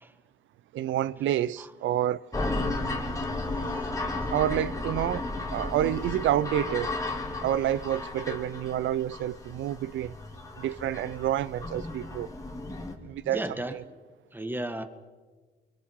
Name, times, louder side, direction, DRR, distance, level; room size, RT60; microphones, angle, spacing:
voice 1, 0.7-2.3 4.3-7.0 7.4-10.1 10.6-12.3 13.0-13.4 13.7-13.8, right 12 dB, 75° right, 0.6 m, -28 dB
sound 1, 2.3-12.9, left 2 dB, 15° left, 2.9 m, -34 dB
voice 2, 13.2-13.8 14.3-14.8, right 1 dB, 10° right, 1.7 m, -34 dB
29.5 x 24.0 x 4.7 m
cardioid pair, 90°, 20 cm